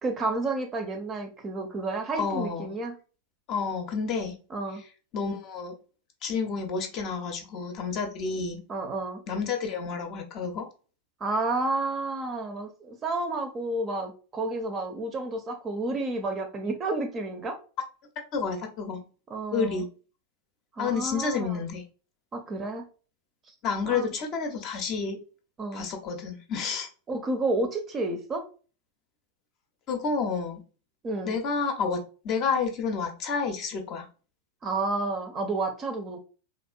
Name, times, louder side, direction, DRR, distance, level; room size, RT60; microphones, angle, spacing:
voice 1, 0.0-3.0 4.5-4.8 8.7-9.2 11.2-17.6 19.3-19.9 20.8-21.6 22.3-22.9 23.9-24.1 25.6-25.9 27.1-28.5 31.0-31.3 34.6-36.2, right 2 dB, 25° right, 0.6 m, -30 dB
voice 2, 2.2-2.7 3.5-4.4 5.1-5.7 6.2-8.6 9.3-10.7 18.3-19.0 19.5-19.9 20.8-21.8 23.6-25.2 25.7-26.9 29.9-30.6 31.2-34.1, left 5 dB, 40° left, 0.7 m, -30 dB
3.5 x 2.4 x 2.3 m
figure-of-eight pair, 90°, 0 cm